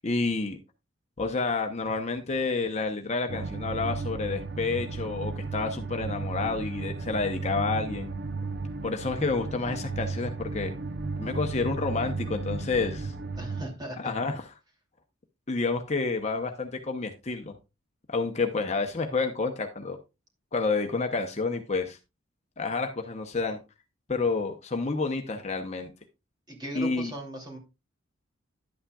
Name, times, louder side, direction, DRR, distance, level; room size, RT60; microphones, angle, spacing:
voice 1, 0.0-0.6 1.2-8.1 8.8-10.7 11.2-13.1 14.0-14.5 15.5-17.5 18.1-20.0 20.5-22.0 22.6-23.6 24.1-25.9 26.8-27.1, left 3 dB, 35° left, 5 dB, 0.8 m, -29 dB
sound 1, 3.3-13.6, right 3 dB, 60° right, 0.7 m, -34 dB
voice 2, 13.4-14.1 26.5-27.6, right 1 dB, 20° right, 1 dB, 2.7 m, -38 dB
11.0 x 8.6 x 2.3 m, 0.26 s
head